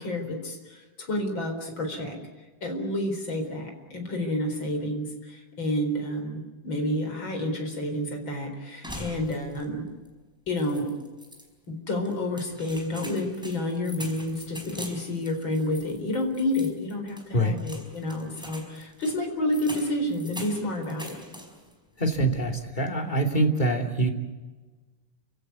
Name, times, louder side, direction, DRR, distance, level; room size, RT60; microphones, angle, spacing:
voice 1, 0.0-2.2 2.6-9.8 10.5-11.0 11.7-21.2, left 1 dB, 35° left, 4 dB, 4.9 m, -29 dB
sound 1, 8.8-9.8 10.1-10.2 10.6-11.5 12.1-21.7 22.1-22.6, equal, ahead, 4.4 m, -43 dB
voice 2, 22.0-24.1, right 1 dB, 15° left, 2 dB, 2.6 m, -24 dB
29.5 x 16.5 x 9.6 m, 1.3 s
omnidirectional pair, 3.6 m